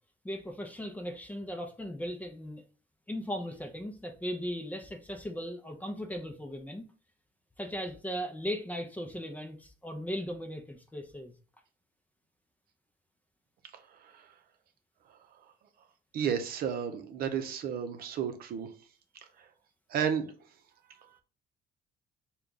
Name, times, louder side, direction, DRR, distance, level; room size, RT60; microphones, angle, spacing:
voice 1, 0.2-2.6 3.1-6.8 7.6-11.3, equal, 10° left, 0.5 m, -37 dB
voice 2, 13.7-14.3 15.1-15.2 16.1-18.7 19.4-19.5 19.9-20.3, right 8 dB, 60° right, 0.7 m, -33 dB
3.4 x 2.3 x 3.9 m
cardioid pair, 110°, 17 cm